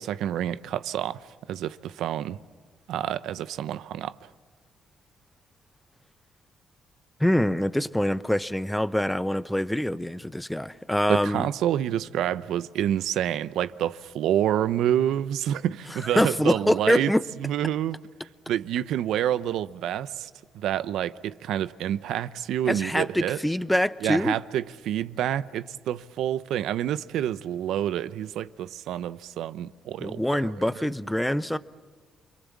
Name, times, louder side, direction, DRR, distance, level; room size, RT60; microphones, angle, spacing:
voice 1, 0.0-2.4 2.9-4.1 11.1-17.1 17.4-18.0 18.5-20.3 20.5-23.4 24.0-30.9, right 11 dB, 80° right, 0.8 m, -28 dB
voice 2, 7.2-11.5 16.1-17.2 22.6-24.4 30.0-31.6, left 1 dB, 5° left, 0.8 m, -25 dB
29.0 x 23.0 x 7.4 m
cardioid pair, 90°, 0 cm